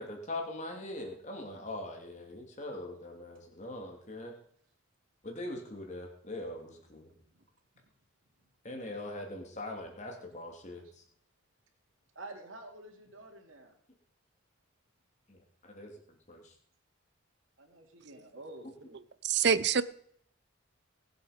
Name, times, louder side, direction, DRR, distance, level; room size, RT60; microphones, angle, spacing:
voice 1, 0.0-4.3 5.2-7.1 8.6-10.8 15.3-15.9 16.3-16.5, left 1 dB, 35° left, 2.6 m, -41 dB
voice 2, 12.1-13.7 17.6-18.7, right 2 dB, 80° right, 2.6 m, -49 dB
voice 3, 19.2-19.8, right 7 dB, 55° right, 0.6 m, -25 dB
19.0 x 7.8 x 5.1 m
head